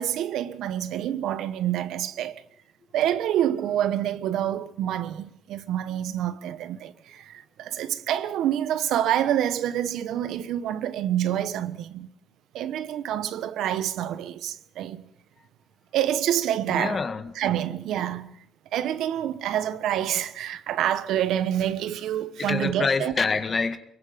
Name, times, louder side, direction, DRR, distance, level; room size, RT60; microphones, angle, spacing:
voice 1, 0.0-2.4 2.9-12.1 12.5-15.0 15.9-17.0 17.4-18.4 18.7-23.1, right 11 dB, 85° right, 1.2 m, -27 dB
voice 2, 16.7-17.3 22.5-23.8, left 4 dB, 40° left, 1.8 m, -26 dB
25.0 x 22.5 x 5.3 m
cardioid pair, 90°, 0 cm